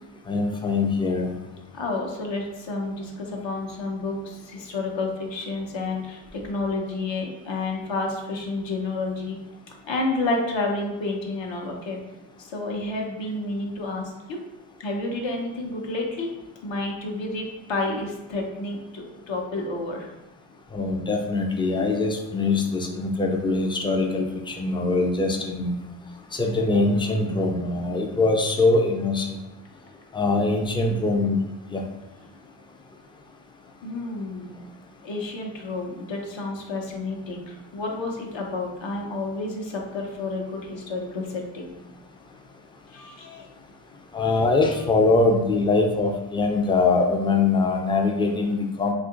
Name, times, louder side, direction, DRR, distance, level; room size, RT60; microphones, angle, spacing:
voice 1, 0.3-1.3 20.7-24.2 24.6-25.7 26.4-29.3 30.2-31.4 31.7-31.8 44.1-48.9, left 3 dB, 10° left, 2 dB, 0.3 m, -22 dB
voice 2, 1.7-9.4 9.9-12.0 12.4-14.4 14.8-16.3 16.6-20.1 33.8-34.5 35.0-41.7 42.9-43.5, left 2 dB, 65° left, 0 dB, 0.8 m, -30 dB
2.8 x 2.5 x 3.7 m, 0.99 s
cardioid pair, 85°, 47 cm